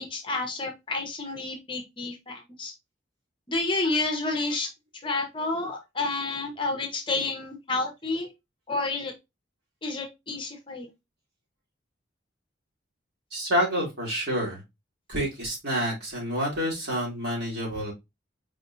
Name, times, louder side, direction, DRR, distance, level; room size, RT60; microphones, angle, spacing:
voice 1, 0.0-2.7 3.5-4.7 5.0-8.3 8.7-9.1 9.8-10.9, left 3 dB, 25° left, 3 dB, 0.9 m, -30 dB
voice 2, 13.3-14.6 15.1-17.9, equal, 55° right, -3 dB, 2.7 m, -28 dB
4.9 x 3.3 x 2.6 m, 0.21 s
head